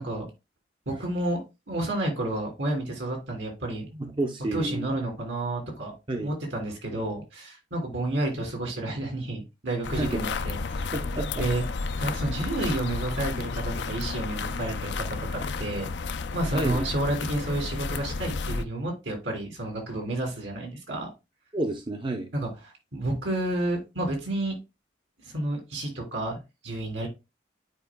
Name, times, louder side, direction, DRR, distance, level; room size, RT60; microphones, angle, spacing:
voice 1, 0.9-3.9 4.5-10.8 11.4-11.6 12.0-15.9 16.3-21.1 22.3-24.5 25.2-27.1, right 1 dB, 80° right, 2.7 m, -30 dB
voice 2, 3.9-4.9 6.1-6.3 9.9-10.2 10.9-11.5 16.5-16.8 21.5-22.3, right 1 dB, 25° right, 0.7 m, -30 dB
sound 1, 9.8-18.6, left 4 dB, 65° left, 0.5 m, -32 dB
9.5 x 4.7 x 2.2 m
head